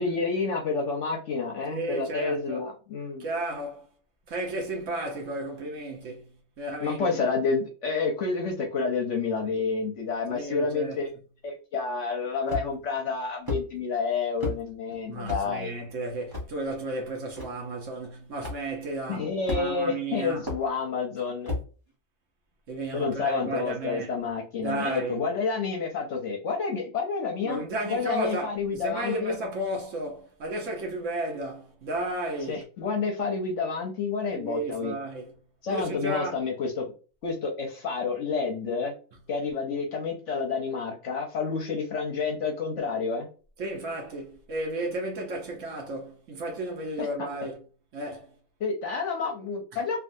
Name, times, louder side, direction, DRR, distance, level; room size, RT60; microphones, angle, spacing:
voice 1, 0.0-3.3 6.8-11.1 11.4-15.7 19.1-21.5 22.9-29.4 32.5-35.0 35.6-36.9 37.2-38.9 39.3-43.3 47.0-47.1 48.6-50.0, left 4 dB, 60° left, 0.9 m, -29 dB
voice 2, 1.7-2.6 3.2-3.9 4.3-6.2 6.6-7.1 10.3-11.0 15.1-20.5 22.7-24.1 24.6-25.2 27.4-32.6 34.4-35.3 35.7-36.4 43.6-47.6 47.9-48.3, right 2 dB, 55° right, 1.1 m, -33 dB
sound 1, 12.5-12.9 13.5-13.6 14.4-14.6 15.3-15.5 16.3-16.5 17.4-17.5 18.4-18.6 19.5-19.9 20.5-20.6 21.5-21.7, left 2 dB, 15° right, 1.1 m, -31 dB
3.4 x 2.4 x 2.6 m
omnidirectional pair, 1.7 m